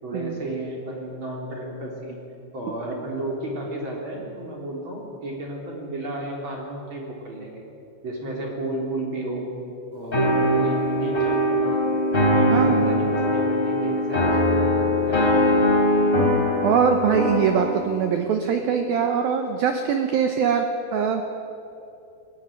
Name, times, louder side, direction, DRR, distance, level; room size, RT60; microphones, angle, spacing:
voice 1, 0.0-2.2 2.5-7.6 8.0-9.5 9.9-11.4 11.7-11.9 12.2-15.6, right 2 dB, 25° right, -1 dB, 3.8 m, -32 dB
sound 1, 10.1-17.9, left 1 dB, 15° left, 2.8 m, -21 dB
voice 2, 12.5-13.2 16.6-20.7 20.9-21.3, right 7 dB, 80° right, 5 dB, 2.1 m, -22 dB
20.0 x 15.0 x 9.6 m, 2.8 s
omnidirectional pair, 5.7 m